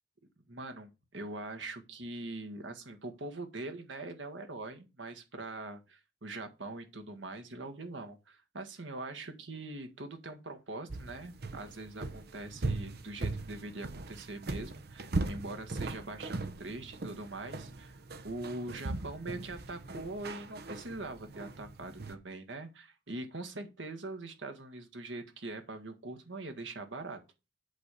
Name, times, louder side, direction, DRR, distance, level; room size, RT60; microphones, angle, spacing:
voice 1, 0.5-18.0 18.2-27.2, right 2 dB, 90° right, 1.7 m, -42 dB
sound 1, 10.9-22.1, right 2 dB, 60° right, 0.9 m, -39 dB
8.3 x 4.2 x 6.8 m
head